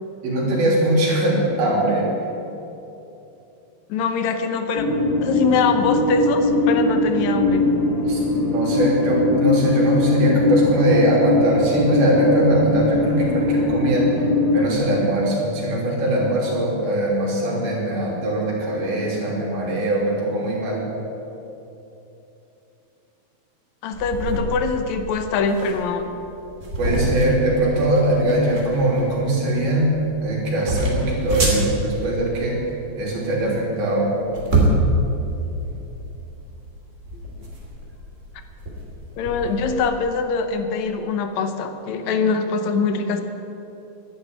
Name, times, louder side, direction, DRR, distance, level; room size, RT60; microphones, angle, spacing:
voice 1, 0.2-2.1 8.1-8.2 8.5-14.3 14.5-20.8 26.8-32.6 33.0-34.1, right 1 dB, 75° right, -4 dB, 5.3 m, -21 dB
voice 2, 3.9-4.9 5.2-7.7 23.8-26.1 39.2-43.2, left 4 dB, 70° left, 7 dB, 1.8 m, -23 dB
sound 1, 4.7-14.7, left 2 dB, 30° left, 2.9 m, -21 dB
sound 2, 23.9-39.7, right 1 dB, 20° right, 2.7 m, -27 dB
11.5 x 11.0 x 9.6 m, 2.9 s
omnidirectional pair, 4.3 m